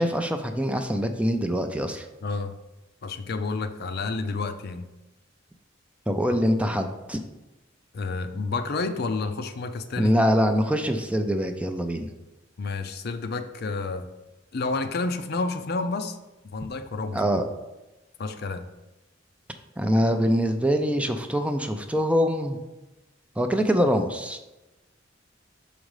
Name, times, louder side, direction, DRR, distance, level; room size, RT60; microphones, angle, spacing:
voice 1, 0.0-2.1 6.1-7.2 10.0-12.1 17.1-17.4 19.8-22.6 23.4-24.4, equal, 5° right, 6 dB, 0.5 m, -24 dB
voice 2, 2.2-2.6 3.0-4.8 7.9-10.1 12.6-14.1 14.5-16.2 16.5-17.2 18.2-18.6, left 3 dB, 55° left, 8 dB, 0.5 m, -30 dB
6.3 x 5.1 x 4.8 m, 1.0 s
head